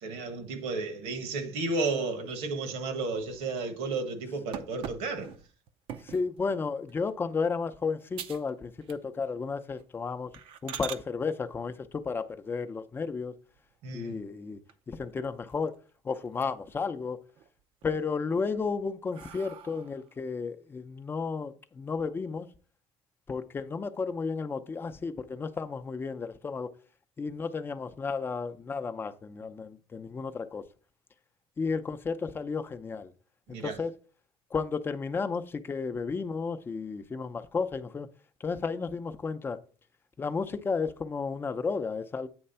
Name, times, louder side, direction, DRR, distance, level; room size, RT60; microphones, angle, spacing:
voice 1, 0.0-5.3 13.8-14.2 33.5-33.8, right 3 dB, 90° right, 1.5 m, -33 dB
sound 1, 4.5-6.3 6.9-7.2 7.6-7.7 8.1-8.5 8.8-9.3 9.7-9.8 10.3-11.0 13.0-13.7 14.2-14.3 14.7-14.8 15.1-15.9 16.2-16.8 17.2-17.9 18.4-20.1, right 9 dB, 60° right, 0.6 m, -43 dB
voice 2, 6.0-10.3 10.6-13.3 13.9-14.6 14.9-15.7 16.0-17.2 17.8-22.5 23.3-26.7 27.2-30.6 31.6-33.1 33.5-33.9 34.5-38.1 38.4-39.6 40.2-42.3, left 5 dB, 20° left, 0.6 m, -33 dB
8.7 x 3.2 x 5.5 m
cardioid pair, 135°, 11 cm